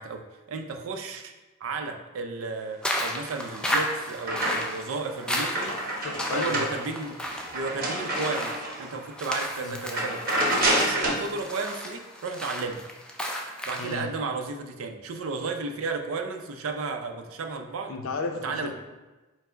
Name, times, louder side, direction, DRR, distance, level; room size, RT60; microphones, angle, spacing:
voice 1, 0.0-1.3 1.6-5.7 6.3-7.2 7.5-10.4 10.8-12.8 13.7-17.9 18.4-18.7, right 3 dB, 80° right, 5 dB, 0.4 m, -33 dB
sound 1, 2.8-14.0, equal, 5° left, 0.4 m, -34 dB
sound 2, 3.3-4.9 5.3-8.9 9.3-9.5 9.8-11.3, right 1 dB, 45° right, 0.9 m, -29 dB
voice 2, 6.0-6.6 9.6-9.8 13.8-14.1 17.9-18.7, left 3 dB, 75° left, 4 dB, 0.5 m, -33 dB
4.4 x 2.0 x 4.3 m, 1.2 s
head